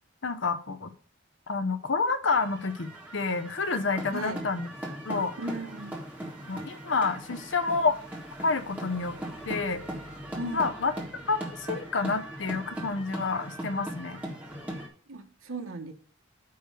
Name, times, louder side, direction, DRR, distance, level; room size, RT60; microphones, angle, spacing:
voice 1, 0.2-0.9 1.5-4.7 5.1-5.3 6.5-8.0 8.4-9.1 9.5-9.8 10.5-14.2, left 4 dB, 60° left, 9 dB, 0.7 m, -29 dB
sound 1, 2.3-14.9, right 1 dB, 10° right, 1.6 m, -39 dB
voice 2, 4.1-4.4 5.4-5.9 10.3-10.6 15.1-15.9, right 2 dB, 85° right, 5 dB, 1.3 m, -36 dB
9.4 x 3.2 x 6.6 m, 0.42 s
head